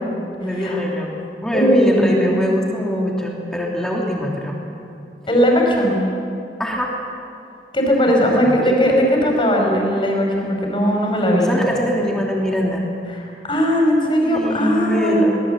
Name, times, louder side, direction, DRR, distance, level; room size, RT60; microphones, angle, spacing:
voice 1, 0.4-1.2 1.4-4.6 6.6-6.9 8.0-8.5 11.4-12.9 14.2-15.4, equal, 5° left, -3 dB, 2.9 m, -23 dB
voice 2, 1.5-2.4 5.3-6.0 7.7-11.5 13.2-15.3, equal, 30° left, 0 dB, 5.0 m, -18 dB
23.5 x 19.0 x 8.0 m, 2.6 s
head